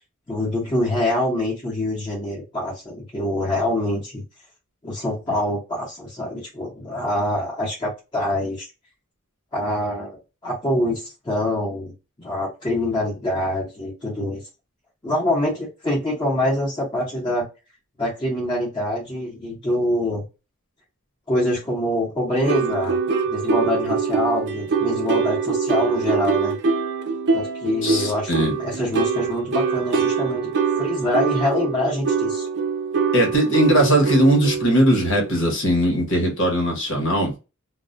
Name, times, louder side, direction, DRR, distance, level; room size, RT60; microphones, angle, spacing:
voice 1, 0.3-4.2 4.8-8.7 9.5-11.9 12.2-14.4 15.0-17.5 18.0-20.2 21.3-23.0 23.3-26.6 27.3-30.4 30.8-32.5, left 1 dB, 20° left, 0.8 m, -25 dB
sound 1, 22.4-35.4, right 5 dB, 50° right, 0.4 m, -24 dB
voice 2, 27.8-28.5 33.1-37.3, right 1 dB, 60° left, 1.0 m, -19 dB
2.3 x 2.1 x 2.5 m
head